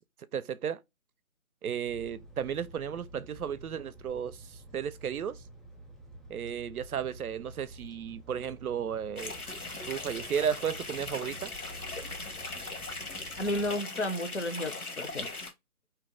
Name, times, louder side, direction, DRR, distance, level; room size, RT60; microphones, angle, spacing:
voice 1, 0.3-0.8 1.6-5.4 6.3-9.3 9.9-11.5, right 8 dB, 80° right, 0.5 m, -34 dB
sound 1, 1.9-13.8, right 1 dB, ahead, 0.3 m, -50 dB
sound 2, 9.1-15.5, left 3 dB, 90° left, 1.1 m, -39 dB
voice 2, 13.4-15.4, left 1 dB, 55° left, 0.5 m, -33 dB
2.8 x 2.2 x 3.5 m
figure-of-eight pair, 165°, 43 cm